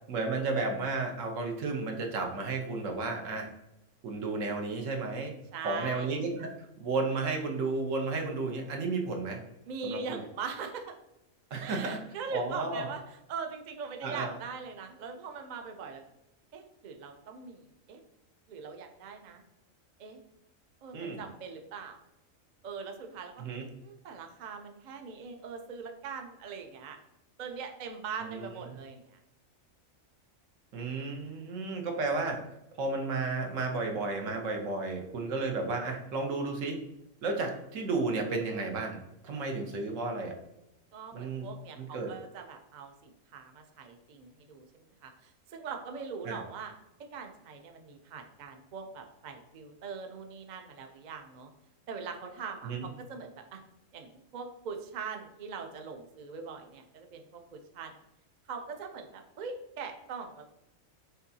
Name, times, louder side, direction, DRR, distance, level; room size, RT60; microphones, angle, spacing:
voice 1, 0.1-3.5 4.0-5.3 5.6-6.5 6.8-9.4 9.8-10.2 11.5-12.0 12.3-12.8 14.0-14.3 20.9-21.2 23.4-23.7 28.2-28.4 30.7-32.4 32.8-36.8 37.2-40.4 41.1-41.5 41.8-42.1 46.2-46.4 52.6-52.9, right 3 dB, 75° right, 3 dB, 1.2 m, -33 dB
voice 2, 5.5-6.1 9.7-10.9 11.6-16.0 16.5-18.0 18.5-19.4 20.0-20.2 20.8-22.0 22.6-23.4 23.8-27.0 27.4-29.2 40.9-46.7 47.1-51.5 51.9-53.6 53.9-57.9 58.5-60.4, right 5 dB, 55° right, 4 dB, 0.5 m, -41 dB
5.8 x 2.7 x 2.7 m, 0.86 s
omnidirectional pair, 1.4 m